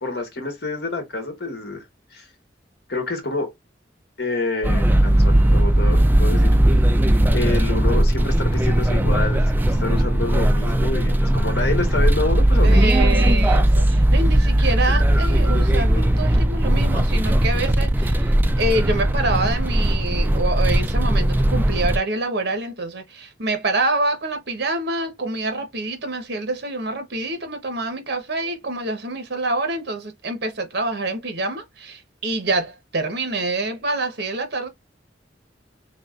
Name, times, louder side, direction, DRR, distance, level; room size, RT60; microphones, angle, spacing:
voice 1, 0.0-1.8 2.1-2.3 2.9-3.5 4.2-6.5 7.3-13.1, left 3 dB, 65° left, 1.4 m, -28 dB
sound 1, 4.6-22.0, right 1 dB, 10° right, 0.4 m, -18 dB
voice 2, 10.9-11.7 12.6-34.7, right 2 dB, 65° right, 1.1 m, -26 dB
4.1 x 3.6 x 2.4 m
head